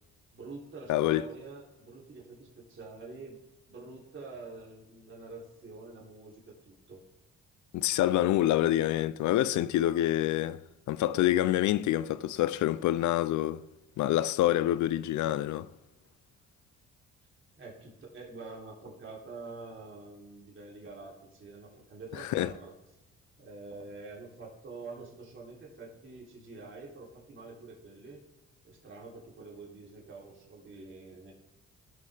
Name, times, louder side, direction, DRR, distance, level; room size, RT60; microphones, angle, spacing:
voice 1, 0.3-3.4 3.7-7.0 17.6-22.7 23.4-28.2 28.6-31.3, right 3 dB, 40° right, 3.3 m, -46 dB
voice 2, 0.9-1.3 7.7-10.6 10.9-13.6 14.0-15.7 22.1-22.5, left 13 dB, 75° left, 0.5 m, -27 dB
17.0 x 6.4 x 3.4 m
cardioid pair, 90°, 30 cm